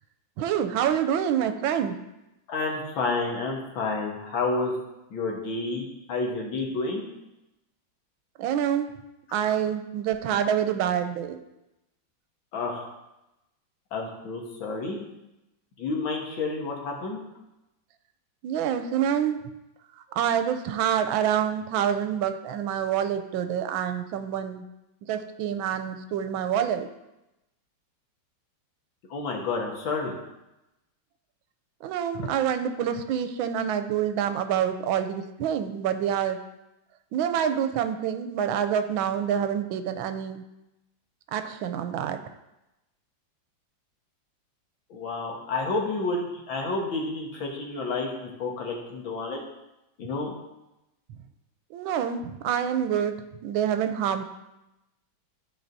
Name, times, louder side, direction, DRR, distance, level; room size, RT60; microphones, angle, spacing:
voice 1, 0.4-2.0 8.4-8.9 9.3-11.4 18.4-19.4 19.9-24.6 25.0-26.9 31.8-36.4 37.1-40.4 41.3-42.2 51.7-53.2 53.4-54.2, right 9 dB, 90° right, 8 dB, 1.4 m, -27 dB
voice 2, 2.5-4.7 5.1-7.0 12.5-12.9 13.9-15.0 15.8-17.2 29.1-30.1 44.9-49.4 50.0-50.3, left 3 dB, 80° left, -1 dB, 2.1 m, -30 dB
12.5 x 4.7 x 2.7 m, 0.93 s
omnidirectional pair, 2.1 m